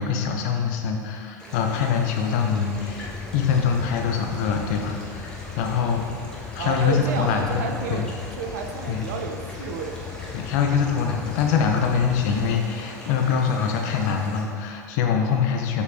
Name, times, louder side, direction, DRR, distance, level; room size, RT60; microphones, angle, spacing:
voice 1, 0.0-6.0 6.5-8.0 8.9-9.1 10.3-15.8, left 6 dB, 60° left, 3 dB, 0.7 m, -24 dB
sound 1, 1.4-14.4, equal, 10° left, 1.3 m, -41 dB
sound 2, 2.7-12.6, left 8 dB, 30° left, 0.4 m, -38 dB
voice 2, 6.6-8.1 8.4-10.1, right 5 dB, 65° right, 4 dB, 0.6 m, -30 dB
6.9 x 4.4 x 3.5 m, 2.2 s
figure-of-eight pair, 75°, 10 cm